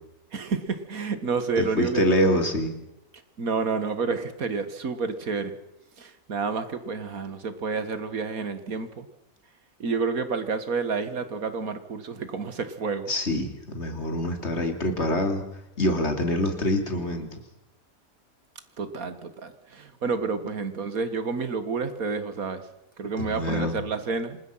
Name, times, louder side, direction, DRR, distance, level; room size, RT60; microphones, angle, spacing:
voice 1, 0.3-2.0 3.4-5.5 6.0-9.1 9.8-13.1 18.8-22.7 23.0-24.4, right 4 dB, 80° right, 10 dB, 2.2 m, -29 dB
voice 2, 1.6-2.7 13.1-15.4 15.8-17.4 23.3-23.8, left 1 dB, 50° left, 5 dB, 3.3 m, -25 dB
27.5 x 20.0 x 5.8 m, 0.87 s
omnidirectional pair, 1.5 m